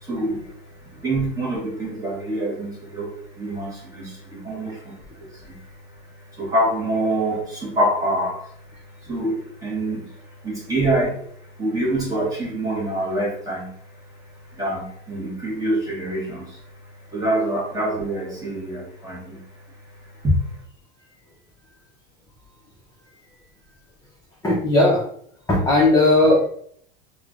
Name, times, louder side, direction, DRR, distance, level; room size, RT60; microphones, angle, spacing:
voice 1, 0.0-0.5 0.9-5.6 6.3-8.5 9.0-10.1 10.4-11.3 11.6-13.7 14.6-16.6 17.1-19.4 20.2-20.3, right 1 dB, 10° right, -4 dB, 0.8 m, -25 dB
voice 2, 24.4-25.1 25.5-26.5, left 2 dB, 10° left, -6 dB, 0.5 m, -17 dB
3.1 x 2.1 x 2.4 m, 0.62 s
supercardioid pair, 140°, 29 cm